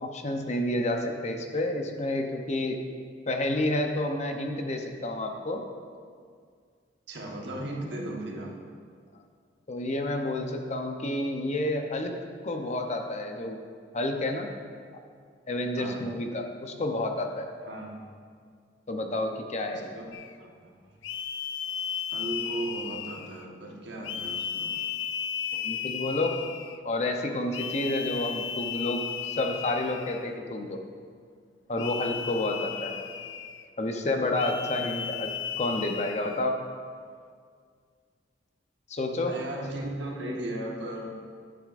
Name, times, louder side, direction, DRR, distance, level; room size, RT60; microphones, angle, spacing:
voice 1, 0.0-2.8 3.3-5.6 9.7-12.2 12.4-13.6 13.9-14.5 15.5-17.5 18.9-19.9 25.5-26.4 26.8-30.8 31.7-32.9 33.8-35.3 35.6-36.6 38.9-39.3 40.2-40.4, left 1 dB, 40° left, 4 dB, 0.7 m, -30 dB
voice 2, 7.1-8.5 15.8-16.1 17.6-18.0 19.7-19.8 20.4-21.0 22.1-24.7 39.2-41.1, right 1 dB, 70° right, -1 dB, 1.3 m, -36 dB
sound 1, 20.1-20.4 21.0-23.4 24.0-26.8 27.5-30.3 31.8-33.7 34.3-36.4, left 8 dB, 80° left, 0.4 m, -35 dB
10.5 x 9.5 x 2.5 m, 2.1 s
head